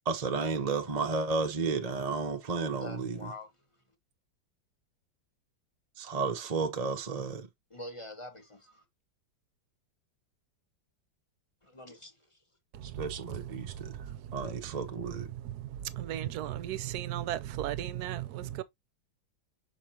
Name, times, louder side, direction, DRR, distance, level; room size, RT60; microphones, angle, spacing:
voice 1, 0.1-3.3 6.0-7.5 12.8-14.0 14.3-15.3, right 4 dB, 40° right, 0.5 m, -32 dB
voice 2, 2.8-3.5 7.7-8.8 11.6-12.4, left 1 dB, 20° left, 1.1 m, -45 dB
voice 3, 12.7-18.6, right 12 dB, 70° right, 1.0 m, -37 dB
6.4 x 5.3 x 2.8 m
omnidirectional pair, 2.0 m